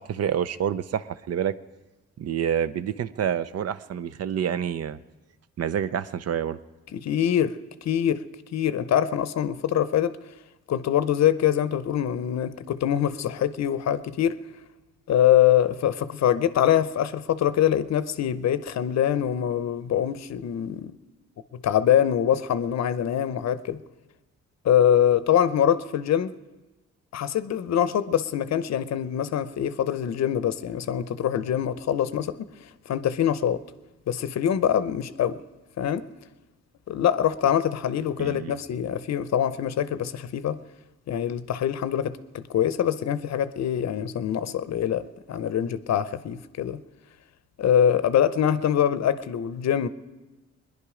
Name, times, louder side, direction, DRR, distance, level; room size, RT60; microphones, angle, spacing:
voice 1, 0.0-1.6 2.2-5.0 5.6-6.6 38.2-38.6, right 9 dB, 55° right, 0.6 m, -28 dB
voice 2, 6.9-8.2 8.5-10.2 10.7-14.4 15.1-21.0 21.5-23.8 24.6-26.3 27.1-32.3 32.9-33.6 34.1-35.4 35.8-36.0 36.9-40.6 41.1-45.0 45.3-46.8 47.6-49.9, left 10 dB, 65° left, 0.7 m, -24 dB
20.5 x 10.5 x 4.9 m
cardioid pair, 75°, 29 cm